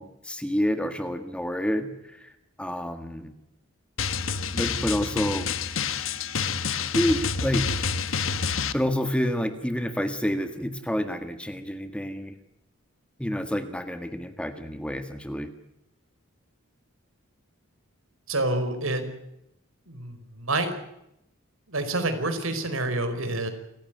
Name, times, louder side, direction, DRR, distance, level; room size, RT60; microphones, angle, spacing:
voice 1, 0.0-2.3 2.6-3.3 4.5-5.5 6.9-7.9 8.7-12.3 13.2-15.5, equal, 5° left, 8 dB, 1.7 m, -28 dB
Drum, 4.0-8.7, left 5 dB, 75° left, 1.4 m, -28 dB
voice 2, 18.3-19.0 19.9-20.7 21.7-23.5, right 2 dB, 80° right, 8 dB, 4.8 m, -28 dB
29.0 x 15.5 x 9.3 m, 0.84 s
head